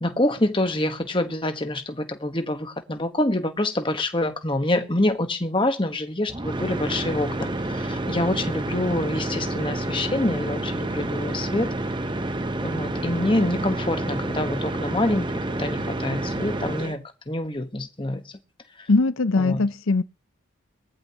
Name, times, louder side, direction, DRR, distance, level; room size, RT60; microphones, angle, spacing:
voice 1, 0.0-11.7 12.6-18.2 19.4-19.6, left 1 dB, 25° left, 1.3 m, -26 dB
sound 1, 6.3-17.0, right 2 dB, 20° right, 0.9 m, -29 dB
voice 2, 18.9-20.0, left 3 dB, 80° left, 0.7 m, -21 dB
20.5 x 14.5 x 3.0 m
head